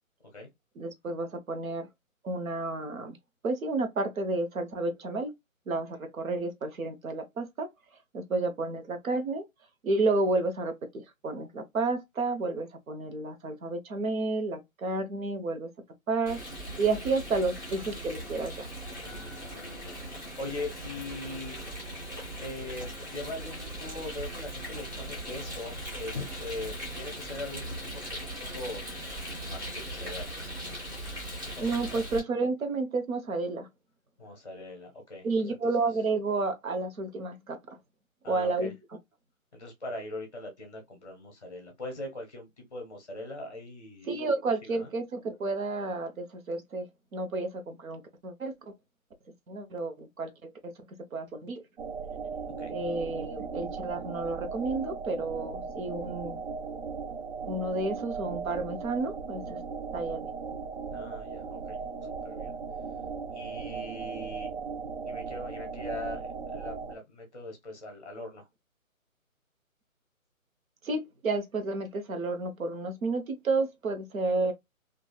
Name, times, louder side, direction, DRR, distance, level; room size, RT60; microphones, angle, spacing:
voice 1, 0.8-1.9 2.2-3.2 3.4-5.3 5.7-7.7 8.1-9.5 9.8-15.7 16.1-16.4 16.8-18.7 31.6-33.7 35.2-37.6 38.3-38.8 44.1-46.9 47.1-48.7 49.5-51.6 52.7-56.4 57.5-59.6 59.9-60.3 70.8-74.5, right 3 dB, 75° right, 0.9 m, -31 dB
Rain, 16.3-32.2, right 1 dB, 15° right, 0.7 m, -39 dB
voice 2, 19.0-21.6 22.4-28.8 29.4-31.2 31.4-32.0 34.2-35.6 38.2-38.7 39.5-44.1 44.6-44.9 52.6-52.7 60.9-62.5 63.3-64.5 65.1-68.5, left 2 dB, 30° left, 0.6 m, -41 dB
sound 1, 51.8-67.0, right 5 dB, 50° right, 0.5 m, -37 dB
3.1 x 2.4 x 2.2 m
figure-of-eight pair, 160°, 42 cm